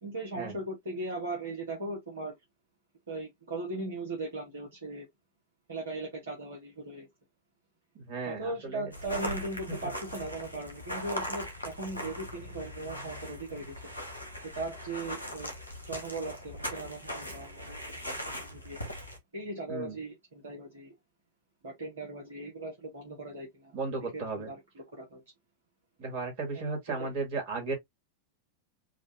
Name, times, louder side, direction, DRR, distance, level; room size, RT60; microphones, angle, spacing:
voice 1, 0.0-2.3 3.1-5.1 5.7-7.1 8.3-13.8 14.5-15.5 15.9-18.8 19.3-20.9 21.6-23.8 24.1-25.2 26.5-26.6 27.0-27.1, right 2 dB, 65° right, 1.3 m, -38 dB
voice 2, 7.9-8.9 19.7-19.9 23.7-24.5 26.0-27.7, right 4 dB, 50° right, 2.4 m, -35 dB
sound 1, 8.9-19.2, equal, 90° right, 1.3 m, -40 dB
4.8 x 2.5 x 2.7 m
figure-of-eight pair, 90°, 0 cm